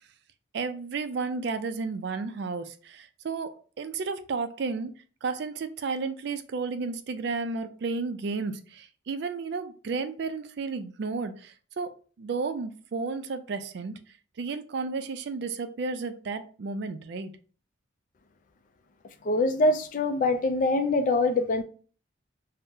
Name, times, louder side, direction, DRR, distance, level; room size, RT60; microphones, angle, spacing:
voice 1, 0.5-4.9 5.2-11.9 12.2-14.0 14.4-17.3, right 4 dB, 60° right, 0.4 m, -32 dB
voice 2, 19.2-21.6, left 2 dB, 45° left, 0.3 m, -24 dB
2.7 x 2.0 x 3.6 m
head